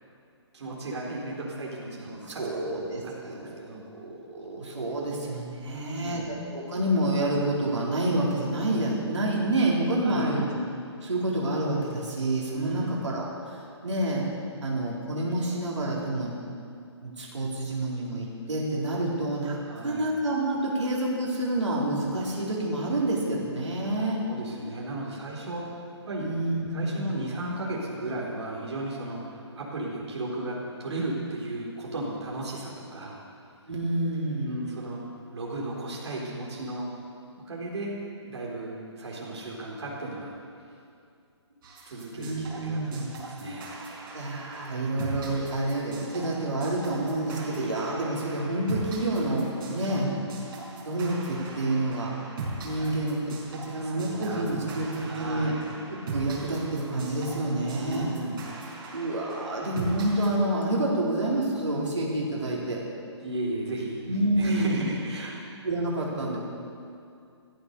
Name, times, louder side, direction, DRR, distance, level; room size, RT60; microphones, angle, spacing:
voice 1, 0.5-3.8 5.6-6.2 10.0-10.4 12.5-13.1 19.6-20.1 21.8-21.9 24.2-26.3 26.7-33.2 34.4-35.0 35.3-36.9 37.4-37.9 38.2-40.3 41.9-43.7 49.8-50.3 52.7-52.9 53.7-55.6 57.7-58.4 63.2-64.0 64.4-65.4, right 2 dB, 70° right, -4 dB, 3.9 m, -35 dB
voice 2, 2.3-10.5 11.0-14.2 14.6-16.3 17.0-24.2 26.2-27.1 33.7-34.6 42.2-43.1 44.1-50.1 50.8-52.1 52.6-55.6 56.1-58.1 58.9-62.8 64.1-64.9 65.6-66.4, right 1 dB, 85° right, -4 dB, 4.1 m, -28 dB
sound 1, 41.6-60.4, right 3 dB, 50° right, 4.8 m, -40 dB
14.0 x 14.0 x 6.7 m, 2.4 s
hypercardioid pair, 145°, 15 cm